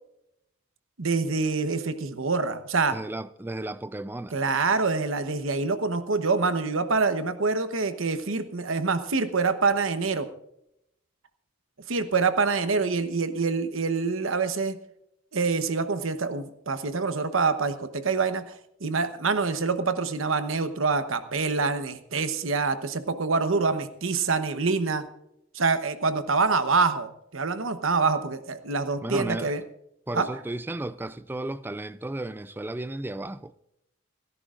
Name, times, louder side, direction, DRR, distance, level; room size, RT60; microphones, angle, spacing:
voice 1, 1.0-2.9 4.3-10.3 11.9-14.8 15.3-25.0 25.5-29.6 30.1-30.3, right 4 dB, 70° right, 1.0 m, -26 dB
voice 2, 2.9-4.4 29.0-29.5 30.1-33.6, right 1 dB, 10° right, 0.4 m, -34 dB
30.0 x 11.0 x 2.5 m
head